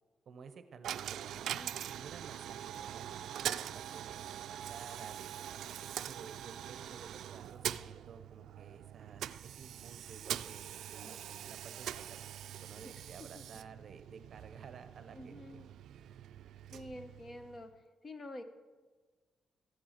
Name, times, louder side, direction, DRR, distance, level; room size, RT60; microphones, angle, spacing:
voice 1, 0.3-5.4 6.1-12.3 12.6-15.6, right 5 dB, 55° right, 10 dB, 0.9 m, -53 dB
Coin (dropping), 0.8-17.8, right 10 dB, 85° right, 0.3 m, -43 dB
voice 2, 15.1-15.7 16.7-17.7 18.0-18.4, left 1 dB, 35° left, 9 dB, 1.0 m, -48 dB
14.0 x 7.6 x 5.9 m, 1.3 s
cardioid pair, 115°, 0 cm